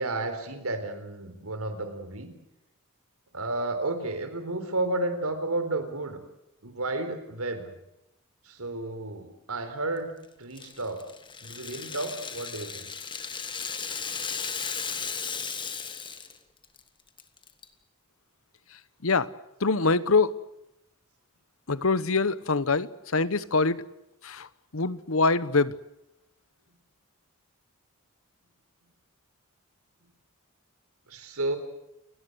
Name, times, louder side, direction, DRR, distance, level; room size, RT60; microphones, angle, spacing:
voice 1, 0.0-2.3 3.3-6.2 6.6-7.7 8.4-10.1 10.4-11.0 11.4-12.9 31.1-31.6, right 2 dB, 75° right, 10 dB, 4.1 m, -32 dB
Rattle (instrument), 10.6-16.4 16.6-16.8 17.2-17.6, left 6 dB, 20° left, 1.8 m, -35 dB
voice 2, 19.6-20.3 21.7-22.9 23.1-23.8 24.2-24.5 24.7-25.7, left 3 dB, 65° left, 17 dB, 1.0 m, -24 dB
29.5 x 18.0 x 8.1 m, 0.85 s
head